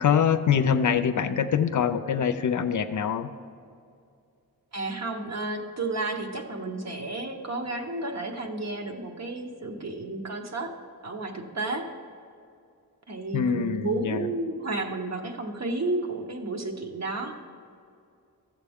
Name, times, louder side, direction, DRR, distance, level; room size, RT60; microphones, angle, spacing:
voice 1, 0.0-3.3 13.3-14.3, left 7 dB, 60° left, 10 dB, 0.5 m, -24 dB
voice 2, 4.7-10.7 11.0-11.9 13.1-17.4, right 2 dB, 50° right, 4 dB, 1.0 m, -32 dB
14.0 x 7.4 x 3.6 m, 2.4 s
wide cardioid pair, 90°, 35 cm